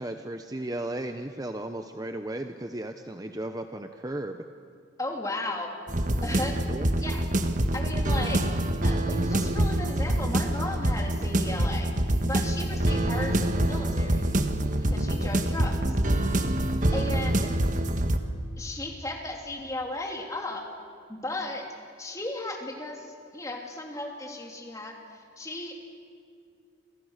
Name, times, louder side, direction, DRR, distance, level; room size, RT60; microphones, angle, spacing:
voice 1, 0.0-4.4 6.7-6.9, right 1 dB, 20° right, 7 dB, 0.8 m, -35 dB
voice 2, 5.0-5.7 6.2-6.6 7.0-7.2 7.7-8.4 8.8-11.9 12.2-14.2 14.8-16.0 16.9-17.5 18.2-20.6 21.1-21.6 22.0-25.7, left 2 dB, 15° left, 1 dB, 3.3 m, -35 dB
sound 1, 5.9-18.2, right 1 dB, 40° right, 1.5 m, -26 dB
29.0 x 28.0 x 6.6 m, 2.3 s
head